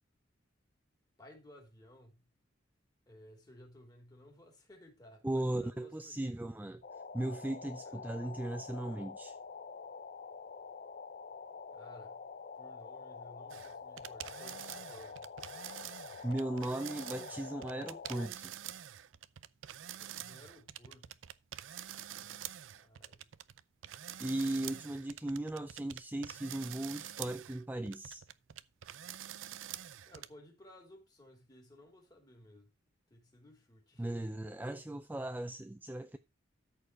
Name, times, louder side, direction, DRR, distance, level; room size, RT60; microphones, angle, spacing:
voice 1, 1.2-2.2 3.1-6.3 7.8-8.0 11.7-12.2 12.5-15.3 19.9-21.2 22.2-22.4 22.7-23.3 30.0-32.7 33.1-34.3, left 1 dB, 20° left, 3.3 m, -57 dB
voice 2, 5.2-6.8 7.1-9.4 16.2-18.5 24.2-28.2 34.0-36.2, right 1 dB, 10° right, 0.4 m, -37 dB
sound 1, 6.8-18.3, left 5 dB, 45° left, 0.6 m, -47 dB
sound 2, 13.5-30.3, right 11 dB, 80° right, 0.5 m, -46 dB
13.0 x 4.6 x 4.7 m
head